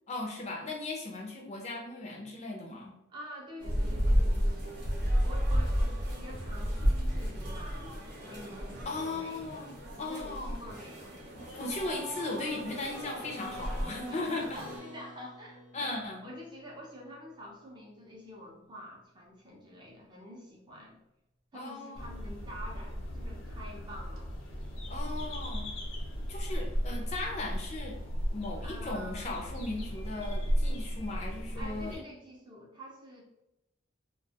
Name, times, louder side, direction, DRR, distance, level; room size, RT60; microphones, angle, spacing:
voice 1, 0.1-3.0 8.9-10.6 11.3-14.6 15.7-16.3 21.5-22.1 24.9-25.7 26.3-28.0 28.3-32.0, left 2 dB, 35° left, 0 dB, 0.4 m, -37 dB
voice 2, 3.1-11.1 14.1-15.9 16.2-21.0 21.5-24.4 28.6-29.4 31.6-33.2, equal, 25° right, -2 dB, 0.6 m, -47 dB
sound 1, 3.6-14.8, equal, 55° right, 0.8 m, -32 dB
Acoustic guitar, 14.5-19.2, right 1 dB, 85° right, 0.5 m, -54 dB
sound 2, 21.9-32.0, equal, 90° left, 0.7 m, -35 dB
2.4 x 2.2 x 2.7 m, 0.88 s
head